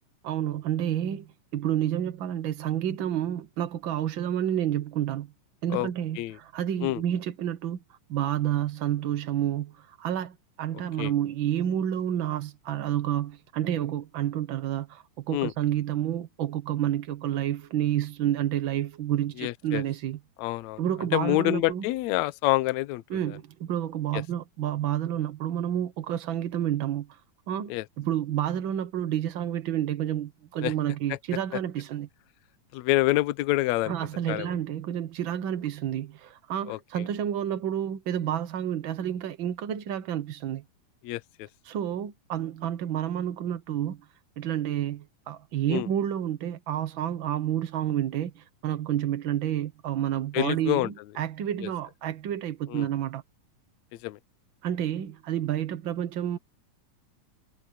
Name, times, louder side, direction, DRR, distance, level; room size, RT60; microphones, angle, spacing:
voice 1, 0.2-5.3 5.6-7.8 8.1-20.2 20.8-21.8 23.1-27.1 27.5-32.1 33.9-40.6 41.7-44.0 44.4-53.2 54.6-56.4, right 11 dB, 80° right, 1.1 m, -29 dB
voice 2, 19.4-19.8 20.4-20.8 21.1-23.4 24.1-24.2 27.7-27.9 30.6-30.7 32.7-33.9 34.3-34.6 36.7-36.8 41.0-41.5 45.7-45.9 50.3-50.9 51.6-51.7 52.7-52.9 53.9-54.2, left 18 dB, 75° left, 1.8 m, -27 dB
omnidirectional pair, 3.7 m